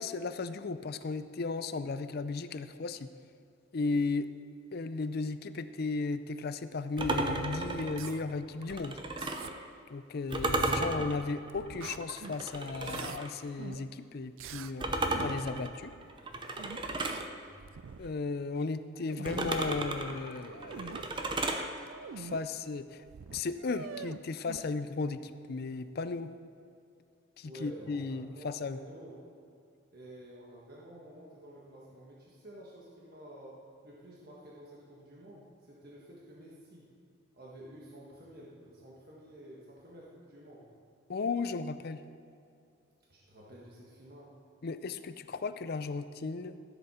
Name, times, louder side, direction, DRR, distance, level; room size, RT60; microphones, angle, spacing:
voice 1, 0.0-3.1 3.7-4.3 4.7-9.0 9.9-15.9 18.0-21.3 22.2-23.0 23.3-26.3 27.4-28.8 41.1-42.0 44.6-46.5, left 4 dB, 50° left, 12 dB, 0.4 m, -35 dB
sound 1, 7.0-9.6 10.3-13.3 14.8-17.3 19.2-21.7, right 2 dB, 25° right, 0.6 m, -34 dB
sound 2, 7.8-8.2 8.7-9.5 10.3-11.2 11.5-12.4 12.7-13.2 13.6-13.9 14.4-14.7 15.1-15.4 16.6-17.3 17.6-18.2 18.6-18.7 18.9-19.7 20.3-21.0 21.8-22.4 22.8-22.9 23.1-24.6, right 6 dB, 75° right, 0.4 m, -45 dB
voice 2, 17.2-17.7 27.4-29.2 29.9-33.6 33.8-36.9 37.3-40.7 43.1-44.3, right 1 dB, 50° right, -5 dB, 1.5 m, -51 dB
14.0 x 7.8 x 4.3 m, 2.4 s
head